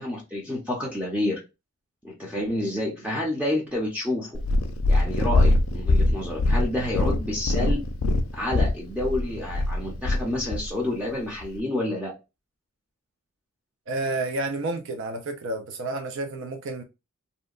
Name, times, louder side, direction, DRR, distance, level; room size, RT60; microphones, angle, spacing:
voice 1, 0.0-1.4 2.0-4.4 4.9-7.8 8.3-12.1, left 1 dB, 5° right, 0.5 m, -29 dB
Purr, 4.3-10.7 11.4-11.5, left 2 dB, 70° left, 0.4 m, -23 dB
voice 2, 13.9-16.8, right 2 dB, 60° right, 0.4 m, -30 dB
2.7 x 2.1 x 2.3 m
head